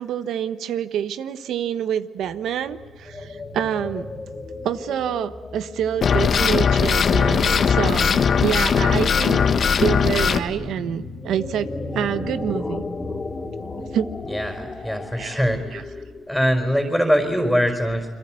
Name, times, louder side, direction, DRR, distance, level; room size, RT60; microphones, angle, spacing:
voice 1, 0.0-4.1 4.6-11.7 11.9-12.8 13.9-14.1 15.2-15.4 15.7-15.8, right 9 dB, 75° right, 12 dB, 1.2 m, -27 dB
sound 1, 2.2-16.4, left 2 dB, 30° left, 3.3 m, -35 dB
sound 2, 6.0-10.4, left 6 dB, 55° left, 1.6 m, -19 dB
voice 2, 14.3-16.0 16.3-18.1, equal, ahead, 3 dB, 4.8 m, -22 dB
29.5 x 22.5 x 7.7 m, 1.4 s
cardioid pair, 75°, 0 cm